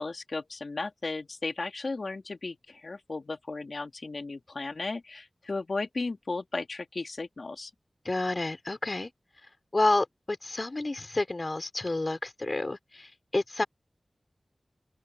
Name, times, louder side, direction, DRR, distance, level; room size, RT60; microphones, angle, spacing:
voice 1, 0.0-7.7, left 3 dB, 70° left, 2.9 m, -35 dB
voice 2, 8.0-9.1 9.7-13.6, left 2 dB, 45° left, 3.4 m, -29 dB
open air
cardioid pair, 45°, 0 cm